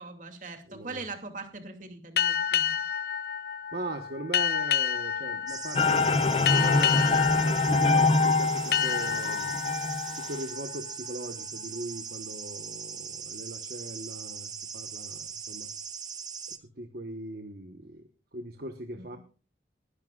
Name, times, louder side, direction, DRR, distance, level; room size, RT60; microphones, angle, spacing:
voice 1, 0.0-2.8 19.0-19.2, right 3 dB, 45° right, 5 dB, 2.6 m, -41 dB
voice 2, 0.7-1.0 3.7-9.5 10.2-15.7 16.5-18.0 18.3-19.2, right 2 dB, 60° right, 5 dB, 1.2 m, -40 dB
sound 1, 2.2-11.4, left 8 dB, 60° left, 0.5 m, -30 dB
sound 2, 5.5-16.6, right 6 dB, 25° right, 1.0 m, -40 dB
sound 3, 5.8-10.3, left 3 dB, 30° left, 0.8 m, -25 dB
20.5 x 11.5 x 2.4 m, 0.35 s
head